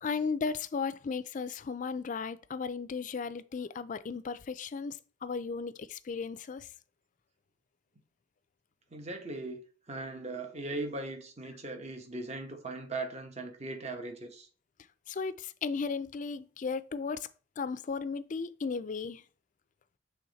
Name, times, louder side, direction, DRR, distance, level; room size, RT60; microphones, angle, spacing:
voice 1, 0.0-6.7 15.1-17.3 17.6-19.2, left 5 dB, 45° left, 0.4 m, -35 dB
voice 2, 8.9-9.6 9.9-14.5, right 2 dB, 35° right, 1.0 m, -39 dB
7.0 x 3.5 x 3.9 m
head